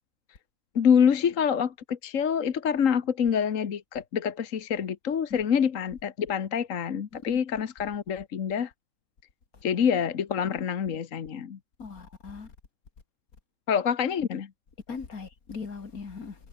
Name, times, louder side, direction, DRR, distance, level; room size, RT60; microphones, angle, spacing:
voice 1, 0.7-8.7 9.6-11.6 13.7-14.5, left 7 dB, 65° left, 1.6 m, -26 dB
voice 2, 11.8-12.5 14.9-16.3, left 5 dB, 85° left, 2.8 m, -39 dB
omnidirectional pair, 1.5 m